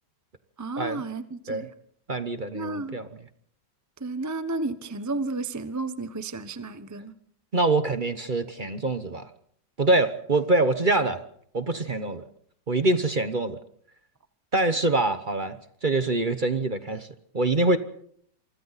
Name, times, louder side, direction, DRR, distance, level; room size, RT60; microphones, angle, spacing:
voice 1, 0.6-1.7 2.5-3.0 4.0-7.1, right 3 dB, 15° right, 0.6 m, -32 dB
voice 2, 2.1-3.1 7.5-9.3 9.8-11.2 11.5-12.2 12.7-13.6 14.5-17.1 17.3-17.8, right 2 dB, 35° right, 1.0 m, -24 dB
27.5 x 25.0 x 4.2 m
omnidirectional pair, 1.9 m